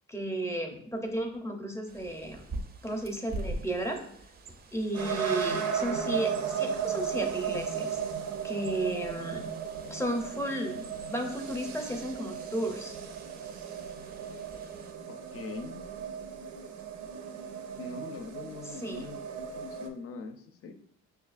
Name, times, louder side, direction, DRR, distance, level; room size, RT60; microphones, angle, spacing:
voice 1, 0.1-2.4 2.8-4.0 4.7-8.0 8.4-9.4 9.9-12.9 18.8-19.0, right 1 dB, 10° left, 3 dB, 0.6 m, -33 dB
Bird, 1.9-14.9, right 2 dB, 35° right, 0.4 m, -46 dB
sound 1, 4.9-19.9, right 7 dB, 90° right, 0.5 m, -35 dB
voice 2, 15.1-15.8 17.8-20.7, left 4 dB, 50° left, 6 dB, 0.5 m, -42 dB
6.1 x 2.3 x 2.4 m, 0.65 s
cardioid pair, 95°, 29 cm